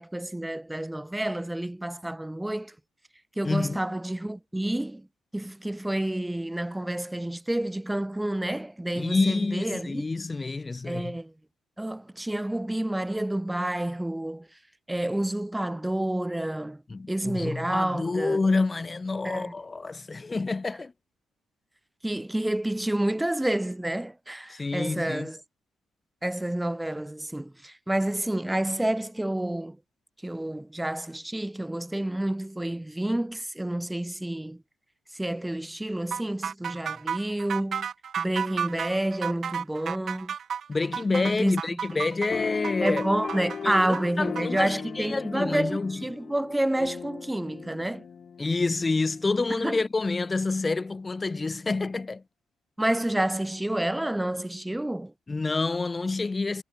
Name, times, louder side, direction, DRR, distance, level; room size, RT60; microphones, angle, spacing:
voice 1, 0.0-2.7 3.4-5.1 5.3-10.1 10.8-11.3 11.8-14.5 14.9-16.8 17.1-18.4 19.2-19.5 22.0-25.4 26.2-29.8 30.2-34.6 35.1-37.9 38.2-40.3 41.3-42.0 42.8-48.1 49.6-49.8 52.8-55.1, right 1 dB, 10° right, 0.6 m, -29 dB
voice 2, 3.4-3.8 8.9-11.1 16.9-20.9 24.5-25.3 40.7-43.0 43.6-46.0 48.4-52.2 55.3-56.6, left 3 dB, 25° left, 2.3 m, -28 dB
sound 1, 36.1-44.7, right 7 dB, 55° right, 0.5 m, -33 dB
sound 2, 42.3-49.2, left 7 dB, 50° left, 5.6 m, -37 dB
cardioid pair, 90°, 0 cm